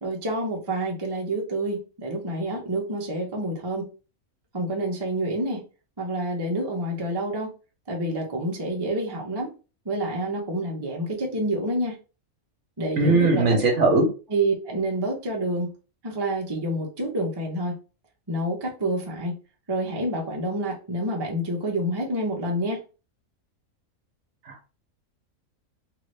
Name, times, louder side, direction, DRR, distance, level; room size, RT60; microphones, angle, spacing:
voice 1, 0.0-3.9 4.5-5.6 6.0-7.5 7.9-9.5 9.9-11.9 12.8-13.7 14.3-15.7 16.0-17.8 18.3-19.4 19.7-22.8, right 1 dB, 25° right, -1 dB, 0.6 m, -28 dB
voice 2, 13.0-14.1 24.5-24.7, right 3 dB, 60° right, 4 dB, 0.9 m, -20 dB
2.9 x 2.6 x 3.1 m, 0.33 s
omnidirectional pair, 1.5 m